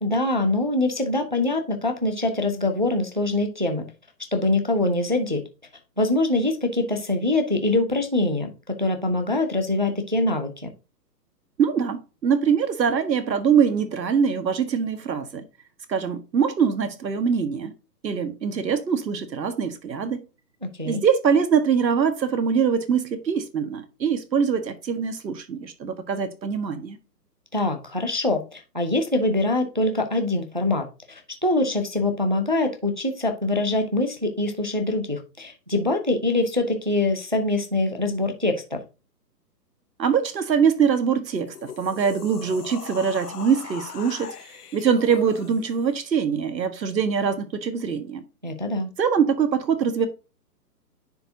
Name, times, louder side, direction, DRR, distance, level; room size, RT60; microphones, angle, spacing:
voice 1, 0.0-3.9 4.3-5.4 6.0-10.7 20.6-21.0 27.5-38.8 48.4-48.9, left 2 dB, 30° right, 0.5 m, -24 dB
voice 2, 11.6-15.4 15.9-17.7 18.0-20.2 20.8-27.0 40.0-44.3 44.7-48.2 49.0-50.1, right 6 dB, 90° right, 1.6 m, -23 dB
sound 1, 41.4-46.0, left 7 dB, 65° left, 1.2 m, -40 dB
10.0 x 4.5 x 2.7 m
hypercardioid pair, 180°, 50 cm